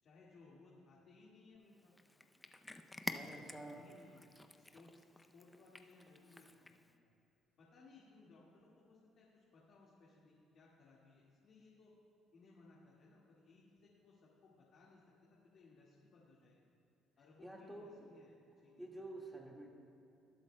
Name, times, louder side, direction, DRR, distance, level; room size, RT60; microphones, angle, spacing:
voice 1, 0.0-1.9 3.6-6.9 7.6-11.9 12.3-16.6 17.2-18.3 18.6-19.0, left 3 dB, 60° left, -5 dB, 1.8 m, -63 dB
Cat, 1.7-7.0, left 2 dB, 10° left, 0.5 m, -50 dB
voice 2, 3.1-3.8 17.4-18.1 18.8-19.7, right 1 dB, 5° right, -1 dB, 1.8 m, -49 dB
20.0 x 7.8 x 2.2 m, 2.8 s
supercardioid pair, 70°, 0 cm